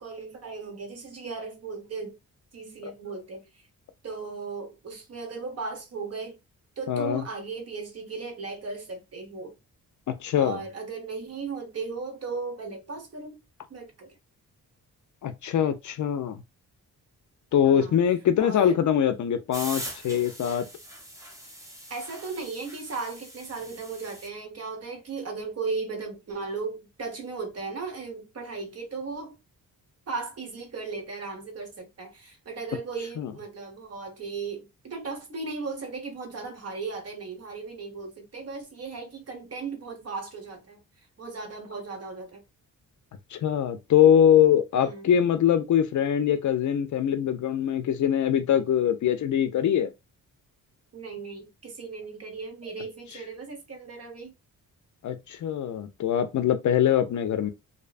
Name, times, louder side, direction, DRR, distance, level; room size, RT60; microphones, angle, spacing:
voice 1, 0.0-2.2 2.5-3.6 4.0-6.4 6.8-9.5 10.4-13.4 13.7-14.1 17.6-18.0 18.4-18.8 21.9-29.4 30.1-40.8 41.2-42.4 44.8-45.2 50.9-54.3, right 4 dB, 45° right, 1.0 m, -36 dB
voice 2, 6.9-7.2 10.1-10.6 15.2-16.4 17.5-20.6 33.2-33.3 43.3-49.9 55.0-57.5, left 9 dB, 60° left, 0.5 m, -23 dB
sound 1, 19.5-24.3, right 1 dB, 10° right, 0.7 m, -42 dB
2.6 x 2.2 x 2.4 m
cardioid pair, 110°, 34 cm